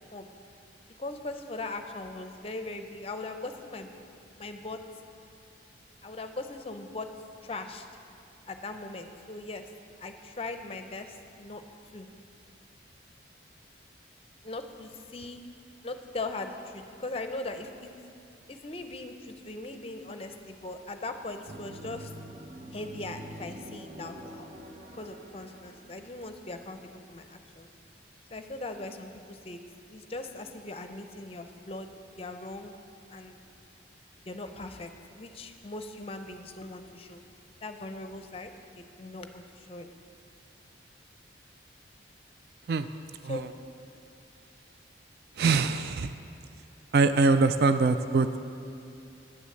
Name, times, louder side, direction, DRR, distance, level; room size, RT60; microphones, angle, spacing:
voice 1, 1.0-3.9 4.4-4.8 6.0-7.1 7.4-7.9 8.5-9.6 10.0-11.6 11.9-12.1 14.4-15.4 15.8-17.9 18.5-22.1 22.7-24.5 24.9-27.7 28.3-29.6 29.9-31.9 32.2-32.7 33.1-33.4 34.3-34.9 35.2-37.2 37.6-39.9 43.2-43.5, left 2 dB, 30° left, 7 dB, 0.6 m, -39 dB
sound 1, 21.5-26.5, right 1 dB, 40° right, 0.7 m, -46 dB
voice 2, 45.4-46.1 46.9-48.4, right 4 dB, 55° right, 10 dB, 0.3 m, -23 dB
9.8 x 7.0 x 7.7 m, 2.6 s
head